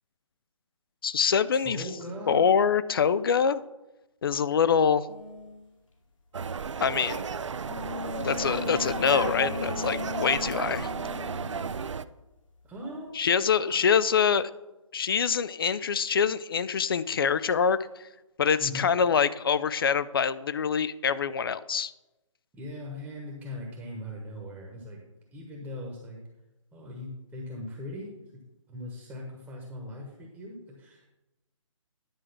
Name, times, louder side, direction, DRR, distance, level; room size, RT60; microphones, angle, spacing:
voice 1, 1.0-1.8 2.3-3.6 4.2-5.1 6.8-7.3 8.2-10.9 13.2-14.5 14.9-17.8 18.4-21.9, left 6 dB, 45° left, 15 dB, 0.4 m, -25 dB
voice 2, 1.5-2.4 12.6-13.2 13.7-14.4 18.6-18.9 22.5-25.0 25.3-26.2 26.7-28.1 28.7-31.1, left 1 dB, 5° right, -1 dB, 1.1 m, -40 dB
sound 1, 5.1-5.7 7.6-12.3 12.6-13.4, left 6 dB, 70° left, 2.3 m, -38 dB
sound 2, 6.3-12.0, right 6 dB, 65° right, 0.4 m, -33 dB
10.5 x 4.8 x 5.9 m, 1.0 s
figure-of-eight pair, 140°, 17 cm